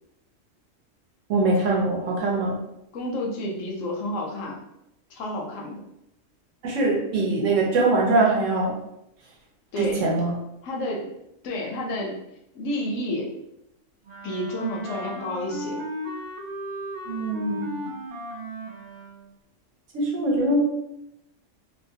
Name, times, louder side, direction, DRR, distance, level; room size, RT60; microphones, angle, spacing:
voice 1, 1.3-2.5 6.6-8.8 9.8-10.3 17.1-17.9 19.9-20.6, right 2 dB, 70° right, -2 dB, 1.0 m, -23 dB
voice 2, 2.9-4.6 5.1-5.8 9.7-10.0 10.6-11.1 11.4-12.2 12.5-13.3 14.2-15.8, left 1 dB, 75° left, 0 dB, 0.9 m, -30 dB
Wind instrument woodwind instrument, 14.0-19.3, equal, 55° right, 0.6 m, -35 dB
2.8 x 2.0 x 2.6 m, 0.83 s
omnidirectional pair, 1.4 m